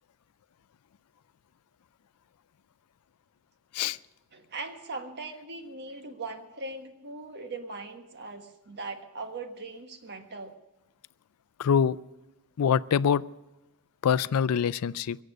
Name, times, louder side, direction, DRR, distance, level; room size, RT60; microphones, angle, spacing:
voice 1, 4.3-10.5, right 3 dB, 50° right, 6 dB, 1.5 m, -40 dB
voice 2, 11.6-12.0 12.6-13.2 14.0-15.2, left 7 dB, 75° left, 18 dB, 0.4 m, -24 dB
23.0 x 8.0 x 6.3 m, 1.0 s
head